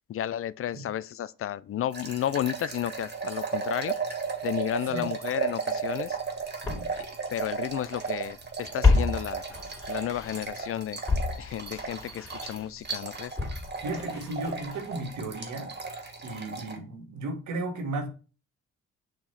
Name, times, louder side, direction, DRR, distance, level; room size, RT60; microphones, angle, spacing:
voice 1, 0.1-4.2 4.4-6.2 7.0-9.4 9.9-11.0 11.4-13.4, left 11 dB, 50° left, 0.4 m, -32 dB
sound 1, 1.9-16.8, right 5 dB, 35° right, 1.8 m, -35 dB
Walk footsteps, 5.9-6.0 6.6-8.1 8.4-10.7 11.1-15.1 15.4-15.5, left 3 dB, 10° left, 2.8 m, -30 dB
voice 2, 13.8-15.7 16.2-18.1, right 2 dB, 75° right, 1.6 m, -35 dB
7.0 x 2.9 x 5.6 m
cardioid pair, 75°, 30 cm